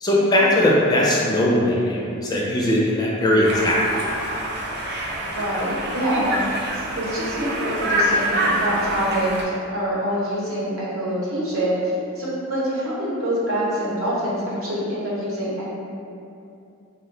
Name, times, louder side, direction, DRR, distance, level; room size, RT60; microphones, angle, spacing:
voice 1, 0.0-3.8, left 1 dB, 20° left, -5 dB, 0.3 m, -19 dB
Conversation, 3.4-9.4, right 1 dB, 50° right, 0.4 m, -26 dB
voice 2, 5.2-15.7, equal, 75° right, -8 dB, 0.8 m, -25 dB
2.2 x 2.1 x 3.6 m, 2.6 s
head